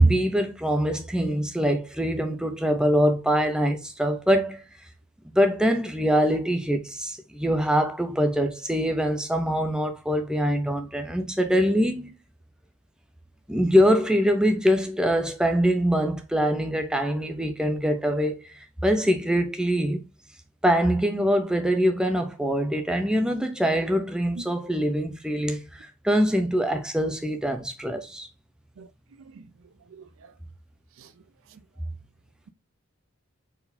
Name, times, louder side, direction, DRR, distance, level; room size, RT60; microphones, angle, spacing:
voice 1, 0.0-4.6 5.2-12.1 13.5-18.5 18.8-20.0 20.6-28.3, equal, 5° right, 0.6 m, -23 dB
voice 2, 28.8-29.5 29.9-30.3 31.0-31.1 31.5-31.6, right 3 dB, 60° right, 0.4 m, -46 dB
4.6 x 3.8 x 2.6 m
head